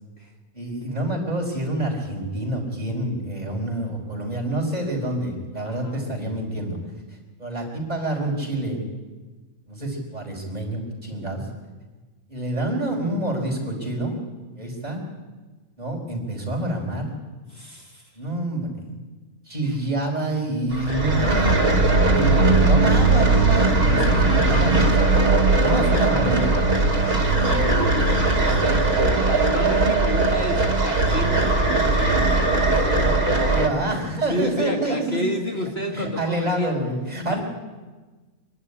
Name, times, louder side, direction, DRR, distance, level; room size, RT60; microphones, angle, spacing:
voice 1, 0.5-6.8 7.4-8.8 9.7-11.5 12.3-14.2 14.6-15.0 15.8-17.1 18.2-18.9 19.5-26.5 27.3-28.0 33.5-35.3 35.6-37.4, right 1 dB, 30° right, -2 dB, 4.8 m, -27 dB
voice 2, 5.6-6.1 17.5-18.0 19.6-19.8 27.2-33.6 34.3-36.8 37.3-37.4, left 1 dB, 45° left, 1 dB, 2.0 m, -31 dB
sound 1, 20.7-33.7, right 3 dB, 65° right, 2.6 m, -19 dB
25.0 x 11.5 x 9.9 m, 1.3 s
omnidirectional pair, 1.5 m